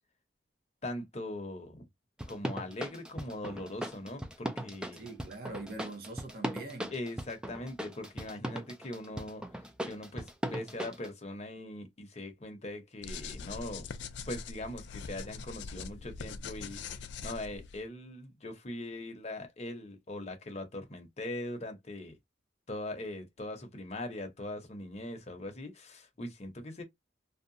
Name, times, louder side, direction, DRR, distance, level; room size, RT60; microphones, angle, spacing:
voice 1, 0.8-1.9 2.3-5.1 6.9-9.4 9.8-13.9 14.3-22.1 22.7-26.8, left 1 dB, 35° left, 0.7 m, -41 dB
sound 1, 2.2-11.1, equal, 5° right, 0.3 m, -38 dB
voice 2, 4.9-6.9, right 2 dB, 55° right, 0.7 m, -43 dB
sound 2, 13.0-17.8, left 5 dB, 75° left, 0.4 m, -42 dB
2.7 x 2.2 x 2.6 m
head